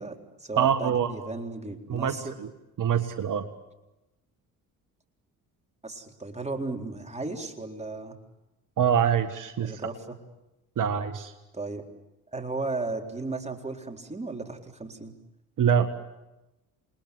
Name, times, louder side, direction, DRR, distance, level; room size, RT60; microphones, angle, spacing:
voice 1, 0.0-2.4 5.8-8.2 9.6-10.2 11.5-11.8 12.3-15.1, right 3 dB, 15° right, 3 dB, 4.0 m, -35 dB
voice 2, 0.6-1.1 1.9-2.5 2.8-3.4 8.8-9.8 10.8-11.3 15.6-15.9, right 8 dB, 45° right, 8 dB, 1.8 m, -24 dB
28.0 x 21.0 x 9.8 m, 0.99 s
figure-of-eight pair, 55°, 44 cm